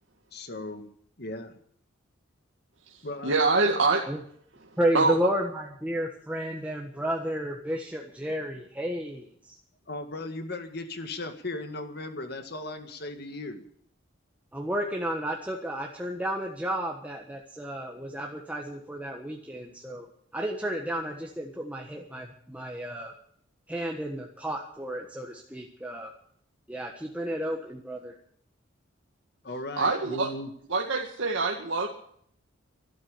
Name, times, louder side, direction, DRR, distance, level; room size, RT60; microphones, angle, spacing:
voice 1, 0.3-0.9 1.2-1.6 3.0-3.8 9.9-13.6 29.4-30.5, left 2 dB, 50° left, 7 dB, 2.0 m, -37 dB
voice 2, 3.2-4.0 4.9-5.1 29.8-30.3 30.7-31.9, right 3 dB, 70° right, 0 dB, 2.0 m, -24 dB
voice 3, 4.8-9.5 14.5-20.1 20.3-23.1 23.7-26.1 26.7-28.1, equal, 5° right, 0 dB, 1.4 m, -32 dB
12.5 x 12.5 x 8.4 m, 0.63 s
head